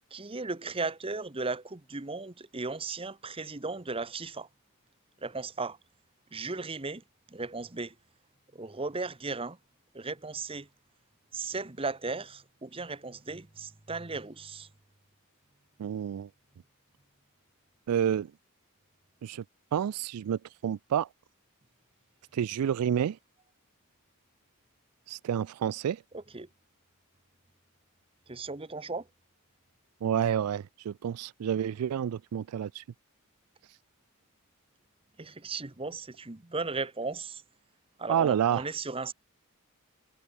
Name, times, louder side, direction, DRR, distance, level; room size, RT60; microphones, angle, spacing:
voice 1, 0.1-4.5 5.2-5.8 6.3-7.0 7.3-7.9 8.5-9.6 9.9-10.7 11.3-14.7 26.1-26.5 28.3-29.1 35.2-37.4 38.0-39.1, right 3 dB, 25° right, 1.0 m, -36 dB
voice 2, 15.8-16.3 17.9-18.3 19.2-19.4 19.7-21.1 22.3-23.2 25.1-26.0 30.0-32.8 38.1-38.6, right 9 dB, 90° right, 0.3 m, -29 dB
head